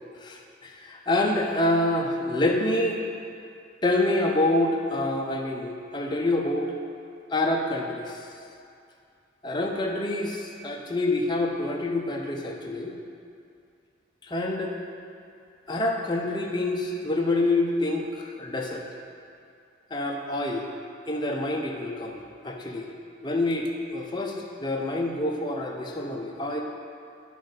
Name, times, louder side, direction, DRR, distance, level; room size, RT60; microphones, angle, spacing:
voice 1, 0.2-3.0 3.8-6.7 7.3-8.2 9.4-12.9 14.3-14.7 15.7-18.8 19.9-20.6 21.1-22.2 22.4-22.8 23.2-26.6, left 2 dB, 25° left, 0 dB, 0.7 m, -27 dB
11.0 x 5.2 x 3.9 m, 2.5 s
head